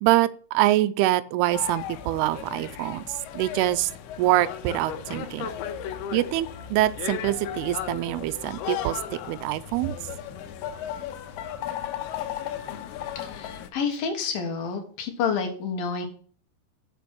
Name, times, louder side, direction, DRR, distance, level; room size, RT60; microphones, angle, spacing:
voice 1, 0.0-3.9 4.2-5.5 6.1-10.0, right 15 dB, 85° right, 15 dB, 2.6 m, -25 dB
sound 1, 1.5-13.7, left 9 dB, 90° left, 2.9 m, -35 dB
voice 2, 13.2-16.1, left 5 dB, 70° left, 5 dB, 3.0 m, -29 dB
7.0 x 5.8 x 6.1 m, 0.43 s
omnidirectional pair, 4.5 m